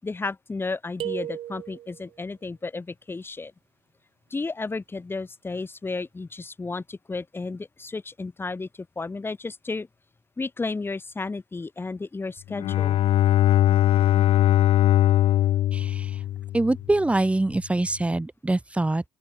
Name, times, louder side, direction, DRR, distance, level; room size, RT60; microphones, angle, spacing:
voice 1, 0.0-3.5 4.3-8.7 9.0-9.9 10.4-13.0, left 3 dB, 20° left, 5.9 m, -33 dB
sound 1, 1.0-2.1, right 12 dB, 65° right, 2.9 m, -34 dB
Bowed string instrument, 12.5-17.0, left 13 dB, 70° left, 1.3 m, -21 dB
voice 2, 15.7-16.2 16.5-19.0, right 2 dB, 10° right, 3.0 m, -24 dB
open air
cardioid pair, 85°, 10 cm